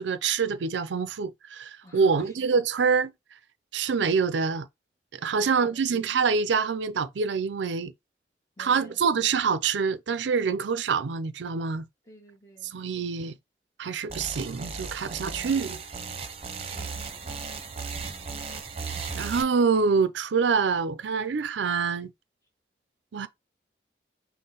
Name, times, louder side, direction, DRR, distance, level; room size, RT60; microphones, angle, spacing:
voice 1, 0.0-3.1 3.7-4.7 5.1-7.9 8.6-11.8 12.6-13.3 13.8-15.8 19.2-22.1 23.1-23.3, right 5 dB, 90° right, 0.5 m, -26 dB
voice 2, 1.8-2.3 5.3-5.8 8.6-9.0 12.0-12.7 15.2-15.6 16.5-17.4 18.0-18.4, left 1 dB, 15° left, 1.1 m, -51 dB
sound 1, 14.1-19.4, right 4 dB, 35° right, 0.8 m, -36 dB
5.5 x 2.1 x 3.9 m
head